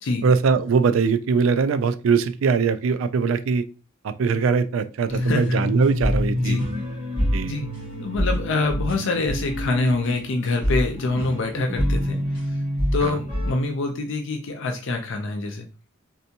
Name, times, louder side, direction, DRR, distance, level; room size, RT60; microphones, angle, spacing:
voice 1, 0.2-3.6 4.0-6.6 7.3-7.5 13.0-13.2, right 5 dB, 65° right, 11 dB, 0.3 m, -21 dB
voice 2, 5.1-5.6 6.4-6.7 7.4-7.7 8.0-12.6 12.9-15.7, left 3 dB, 65° left, 4 dB, 0.5 m, -25 dB
sound 1, 5.1-13.5, equal, 25° right, 1.6 m, -26 dB
3.3 x 2.7 x 2.7 m, 0.33 s
head